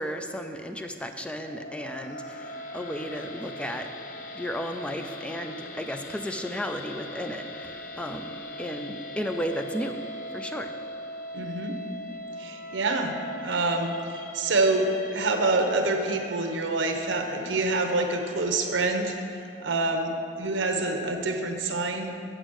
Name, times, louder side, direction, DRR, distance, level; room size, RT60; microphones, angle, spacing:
voice 1, 0.0-3.9 4.3-10.0 10.3-10.7, equal, 5° left, 6 dB, 0.5 m, -34 dB
sound 1, 1.4-19.6, left 1 dB, 45° left, 0.7 m, -41 dB
voice 2, 11.3-11.7 12.4-19.1 19.6-22.1, right 2 dB, 80° right, 4 dB, 0.9 m, -26 dB
8.0 x 6.2 x 6.3 m, 2.7 s
head